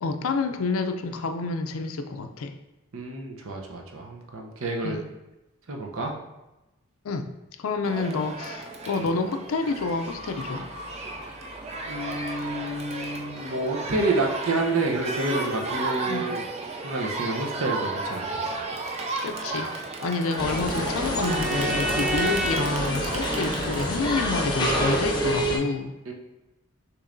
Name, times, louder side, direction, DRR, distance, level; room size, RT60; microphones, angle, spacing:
voice 1, 0.0-2.5 4.8-5.1 7.0-7.3 7.6-10.7 16.0-16.2 19.2-25.9, left 3 dB, 75° left, 7 dB, 0.4 m, -28 dB
voice 2, 2.9-5.0 5.7-6.1 11.9-16.4 16.8-18.2 26.1-26.2, right 2 dB, 70° right, 1 dB, 0.7 m, -29 dB
Crowd, 7.8-25.0, right 2 dB, 30° right, 0.4 m, -33 dB
sound 1, 9.7-15.1, left 1 dB, 5° right, 1.4 m, -46 dB
sound 2, 20.4-25.6, equal, 20° left, 0.7 m, -27 dB
6.4 x 3.1 x 2.5 m, 1.0 s
head